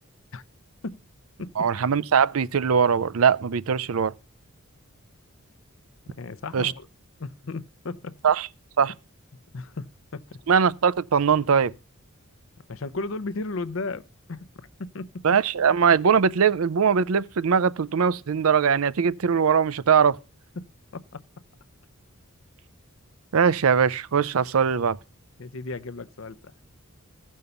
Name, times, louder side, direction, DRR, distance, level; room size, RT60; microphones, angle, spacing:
voice 1, 1.6-4.1 6.5-6.7 8.2-8.5 8.8-8.9 10.5-11.7 15.2-20.2 23.3-25.0, right 6 dB, 75° right, 0.5 m, -21 dB
voice 2, 6.2-6.9 7.2-8.1 9.5-10.4 12.7-14.0 14.3-14.5 14.8-15.4 20.6-21.2 25.4-26.4, left 3 dB, 65° left, 0.6 m, -35 dB
15.0 x 5.5 x 6.8 m
head